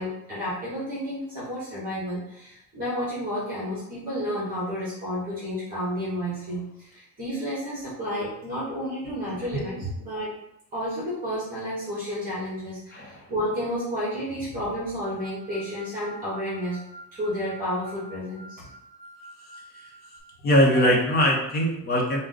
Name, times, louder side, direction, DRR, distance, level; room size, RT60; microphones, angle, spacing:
voice 1, 0.0-10.3 10.7-16.8 17.1-18.7, equal, 25° right, -8 dB, 1.4 m, -31 dB
voice 2, 9.5-9.9 12.9-13.3 20.4-22.2, equal, 30° left, -1 dB, 0.9 m, -22 dB
sound 1, 15.0-20.2, right 1 dB, ahead, 1.5 m, -47 dB
4.8 x 2.2 x 3.9 m, 0.80 s
cardioid pair, 170°, 31 cm